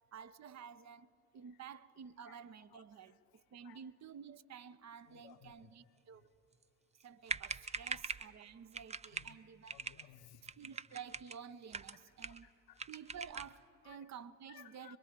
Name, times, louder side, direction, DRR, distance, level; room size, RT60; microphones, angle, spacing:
voice 1, 0.1-1.1 1.3-3.2 3.5-6.3 7.0-9.7 10.6-12.5 12.9-15.0, right 7 dB, 40° right, 0.9 m, -51 dB
voice 2, 2.7-3.1 3.6-3.8 5.1-5.7 7.8-8.0 9.1-9.4 9.7-10.5 11.9-12.0 12.3-12.8 13.8-14.0 14.5-15.0, left 12 dB, 60° left, 1.1 m, -60 dB
sound 1, 7.0-7.1 7.3-8.3 8.7-9.3 9.7-10.0 10.4-11.4 11.7-12.5 12.8-13.6, right 5 dB, 15° right, 0.5 m, -42 dB
24.0 x 23.0 x 5.3 m
figure-of-eight pair, 50°, 42 cm